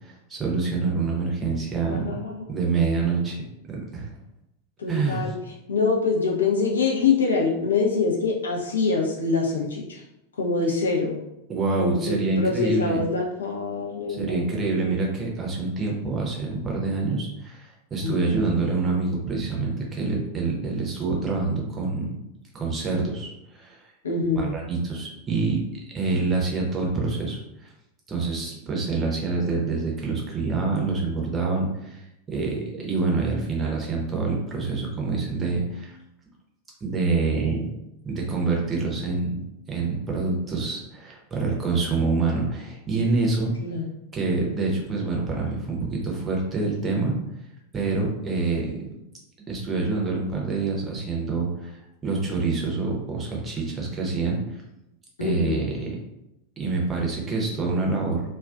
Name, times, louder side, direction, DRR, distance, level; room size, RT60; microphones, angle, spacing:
voice 1, 0.0-2.1 2.5-3.4 3.7-4.1 4.9-5.2 11.5-13.0 14.1-22.1 22.5-23.8 24.3-25.6 25.9-27.7 28.1-36.0 36.8-37.7 38.0-39.4 39.7-43.5 44.1-47.2 47.7-48.7 49.4-51.8 52.0-54.4 55.2-55.9 56.6-58.2, right 3 dB, 20° right, -2 dB, 0.7 m, -26 dB
voice 2, 1.9-2.4 4.8-5.4 5.7-10.0 10.4-11.2 11.8-14.6 18.0-18.3 24.0-24.6 43.6-43.9 55.2-55.6, left 4 dB, 70° left, -1 dB, 0.5 m, -25 dB
2.3 x 2.3 x 2.4 m, 0.88 s
figure-of-eight pair, 90°, 0 cm